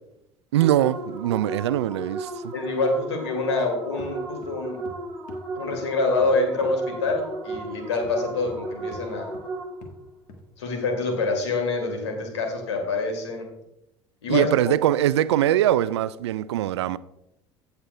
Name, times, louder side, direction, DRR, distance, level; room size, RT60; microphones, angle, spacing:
voice 1, 0.5-2.5 14.3-17.0, right 12 dB, 70° right, 0.4 m, -22 dB
sound 1, 0.6-10.0, right 2 dB, ahead, 3.2 m, -35 dB
voice 2, 2.5-4.8 5.6-9.3 10.6-13.5 14.2-14.5, left 3 dB, 75° left, 2.1 m, -26 dB
sound 2, 4.0-4.2 4.4-5.0 5.3-5.5 5.7-5.9 6.2-6.3 6.6-6.7 7.1-7.2 7.5-7.7 8.0-8.7 8.9-9.1 9.3-9.5 9.8-10.0 10.3-10.4, left 2 dB, 55° left, 1.5 m, -45 dB
16.5 x 6.9 x 2.2 m
figure-of-eight pair, 65°, 15 cm